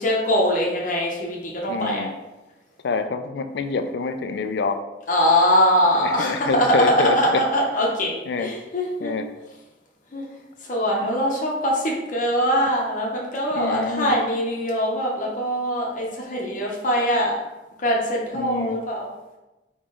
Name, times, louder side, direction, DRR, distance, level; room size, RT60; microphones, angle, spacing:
voice 1, 0.0-2.1 5.1-9.1 10.1-10.3 10.7-17.4 17.8-19.1, equal, 45° left, -3 dB, 0.8 m, -22 dB
voice 2, 1.7-2.1 2.8-4.8 6.0-7.4 8.3-8.5 9.0-9.2 13.6-14.2 18.3-18.8, left 4 dB, 65° left, 7 dB, 0.4 m, -26 dB
3.8 x 3.0 x 3.7 m, 1.0 s
head